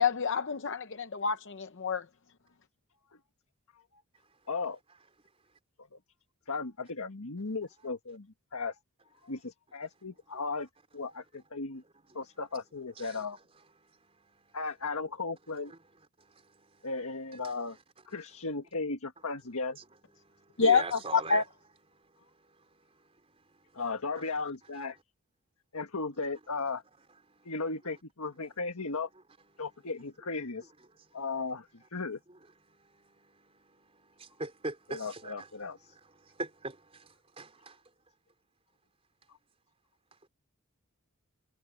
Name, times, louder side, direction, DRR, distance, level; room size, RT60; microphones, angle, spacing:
voice 1, 0.0-2.0 20.6-21.4, left 5 dB, 55° left, 0.7 m, -27 dB
voice 2, 4.5-4.8 6.5-8.3 8.5-8.7 9.2-10.7 10.9-11.8 12.1-13.4 14.5-15.7 16.8-17.8 18.1-19.8 23.7-25.0 25.7-26.8 27.4-29.1 29.6-30.7 31.1-32.2 34.9-35.9, left 4 dB, 75° left, 1.6 m, -36 dB
voice 3, 13.8-14.6 15.7-15.8 16.2-16.9 17.3-17.8 19.8-19.9 20.2-21.4 21.9-23.8 24.2-24.3 27.3-27.5 29.6-29.7 31.1-31.2 32.3-32.4 32.6-35.5 35.9-37.8, right 2 dB, 25° right, 4.2 m, -44 dB
head